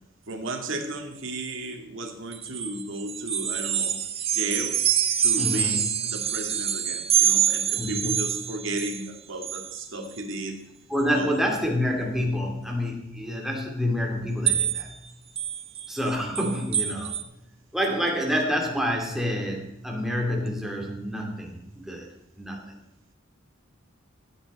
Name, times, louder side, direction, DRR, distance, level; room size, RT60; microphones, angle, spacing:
voice 1, 0.3-4.0 4.3-4.8 5.2-10.6 11.1-11.3, right 2 dB, 70° right, 3 dB, 2.3 m, -34 dB
sound 1, 2.3-9.0 9.4-9.8 10.2-10.4 11.0-11.1 14.5-14.9 15.4-17.2, right 9 dB, 30° right, 0.8 m, -26 dB
voice 2, 5.4-5.8 7.8-8.3 10.9-14.9 15.9-17.2 17.7-22.6, equal, ahead, 0 dB, 2.6 m, -28 dB
16.0 x 9.1 x 4.3 m, 0.89 s
head